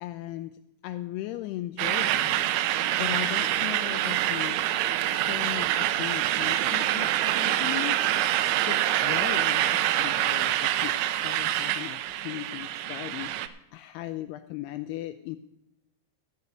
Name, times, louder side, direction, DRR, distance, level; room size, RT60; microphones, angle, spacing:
voice 1, 0.0-2.4 3.0-4.6 5.1-7.1 7.4-8.0 8.7-10.9 11.2-13.3 13.7-15.4, left 15 dB, 90° left, 10 dB, 2.3 m, -37 dB
sound 1, 1.8-13.5, right 13 dB, 85° right, 2.2 m, -26 dB
14.0 x 5.4 x 8.2 m, 0.87 s
omnidirectional pair, 5.2 m